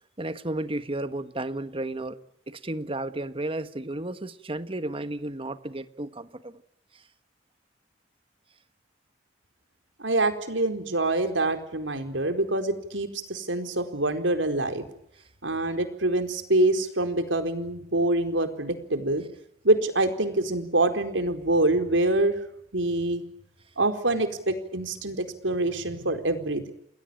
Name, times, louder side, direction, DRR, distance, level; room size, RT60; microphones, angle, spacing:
voice 1, 0.2-2.2 2.5-6.6, right 2 dB, 30° right, 11 dB, 1.5 m, -33 dB
voice 2, 10.0-14.9 15.4-19.2 19.6-22.3 22.7-23.2 23.8-26.7, right 2 dB, 90° right, 7 dB, 4.4 m, -25 dB
29.5 x 20.5 x 8.9 m, 0.79 s
head